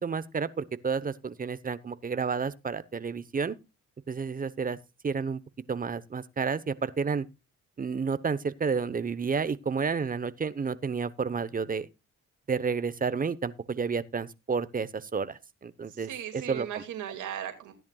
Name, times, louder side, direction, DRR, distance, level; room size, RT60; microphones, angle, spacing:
voice 1, 0.0-3.6 4.1-4.8 5.0-5.4 5.7-7.3 7.8-11.9 12.5-16.8, right 5 dB, 30° right, 0.9 m, -31 dB
voice 2, 15.9-17.7, right 10 dB, 80° right, 2.3 m, -37 dB
16.0 x 10.5 x 2.4 m
cardioid pair, 90°, 30 cm